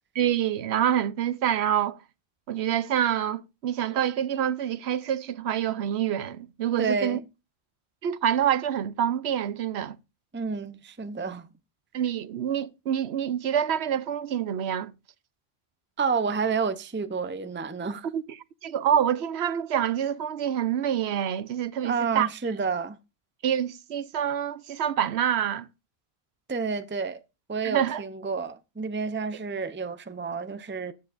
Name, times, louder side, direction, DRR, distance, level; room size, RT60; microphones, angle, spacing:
voice 1, 0.2-2.0 2.5-7.2 8.0-10.0 11.9-14.9 18.0-18.2 18.6-22.3 23.4-25.7 27.6-28.0, right 9 dB, 85° right, 1.0 m, -26 dB
voice 2, 6.8-7.2 10.3-11.5 16.0-18.1 21.8-23.0 26.5-27.2 27.5-30.9, right 5 dB, 15° right, 0.6 m, -30 dB
14.0 x 9.4 x 2.5 m
omnidirectional pair, 1.1 m